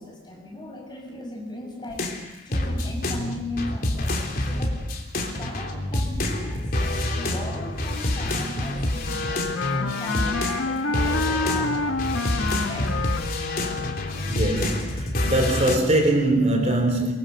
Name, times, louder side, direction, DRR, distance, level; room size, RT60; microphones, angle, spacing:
voice 1, 0.0-4.8 5.2-13.0, left 1 dB, 25° left, 6.5 m, -38 dB
sound 1, 1.9-10.7 10.9-15.8, left 1 dB, 50° left, 3.4 m, -27 dB
Wind instrument woodwind instrument, 9.0-14.4, left 3 dB, 85° left, 1.2 m, -28 dB
voice 2, 14.3-17.1, right 1 dB, 35° right, 3.7 m, -22 dB
24.0 x 23.0 x 6.9 m
head